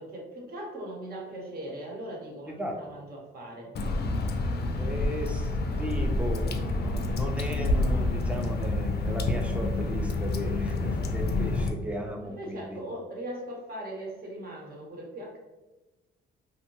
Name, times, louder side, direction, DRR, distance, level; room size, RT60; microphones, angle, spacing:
voice 1, 0.0-4.1 12.2-15.4, right 1 dB, 50° right, -1 dB, 0.9 m, -40 dB
Water / Drip, 3.7-11.7, left 2 dB, 55° left, 0.4 m, -28 dB
voice 2, 4.8-12.8, equal, 5° right, 2 dB, 0.5 m, -36 dB
2.7 x 2.1 x 2.9 m, 1.1 s
cardioid pair, 90°, 20 cm